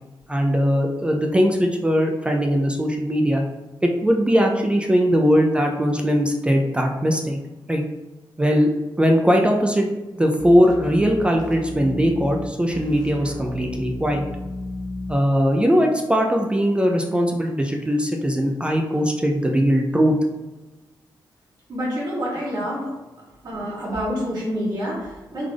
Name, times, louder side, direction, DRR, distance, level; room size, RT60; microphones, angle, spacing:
voice 1, 0.3-3.4 3.8-7.4 7.7-7.8 8.4-8.7 9.0-9.9 10.1-14.2 15.1-20.2, equal, 15° right, 2 dB, 0.3 m, -20 dB
sound 1, 10.3-15.2, left 1 dB, 55° left, 0.9 m, -33 dB
voice 2, 21.7-22.9 23.4-25.5, equal, 60° right, -6 dB, 1.1 m, -27 dB
3.6 x 2.4 x 3.2 m, 1.1 s
wide cardioid pair, 125°, 8 cm